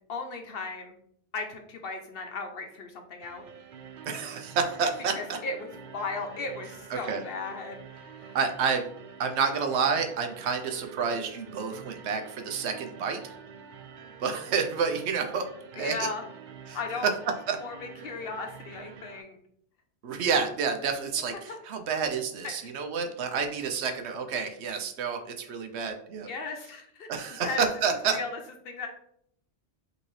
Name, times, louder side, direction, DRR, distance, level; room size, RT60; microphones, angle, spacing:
voice 1, 0.1-0.9 1.3-3.4 5.1-8.4 15.8-16.2 16.7-17.1 17.6-19.4 22.4-22.7 26.2-27.6 28.1-28.4 28.6-28.9, left 3 dB, 60° left, 4 dB, 0.8 m, -36 dB
sound 1, 3.2-19.2, right 6 dB, 60° right, 0.5 m, -47 dB
voice 2, 4.1-5.4 6.9-7.2 8.3-8.9 9.2-13.3 14.2-15.5 15.7-16.1 16.7-17.1 17.5-17.6 20.0-26.3 27.1-28.2, right 5 dB, 75° right, 6 dB, 0.9 m, -29 dB
5.3 x 2.8 x 3.1 m, 0.68 s
omnidirectional pair, 1.2 m